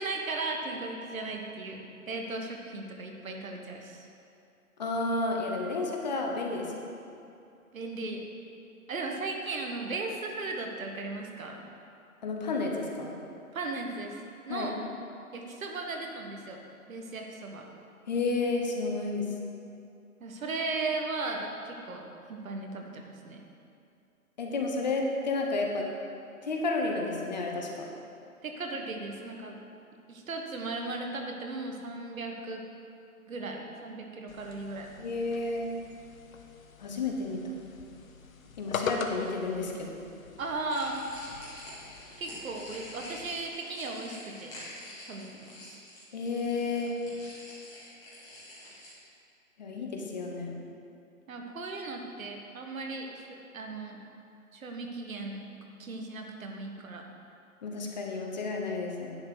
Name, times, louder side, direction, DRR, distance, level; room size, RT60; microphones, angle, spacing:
voice 1, 0.0-4.1 7.7-8.2 8.9-11.6 13.5-14.2 14.5-14.8 15.3-16.6 16.9-17.6 20.2-23.4 28.4-29.6 30.1-32.6 33.3-35.0 40.4-40.9 42.2-44.5 45.0-45.8 51.3-53.3 53.5-54.0 54.5-57.1, right 3 dB, 65° right, 2 dB, 1.5 m, -36 dB
voice 2, 4.8-6.7 12.2-13.2 14.5-14.7 18.1-19.2 24.4-25.8 26.4-27.8 35.0-35.7 36.8-37.5 38.6-40.0 46.1-46.9 49.6-50.5 57.6-59.2, left 3 dB, 30° left, 0 dB, 0.9 m, -31 dB
sound 1, 34.3-43.5, left 5 dB, 65° left, 0.9 m, -42 dB
sound 2, 40.7-48.9, left 1 dB, 5° left, 1.5 m, -47 dB
10.5 x 4.3 x 6.8 m, 2.6 s
hypercardioid pair, 160°, 44 cm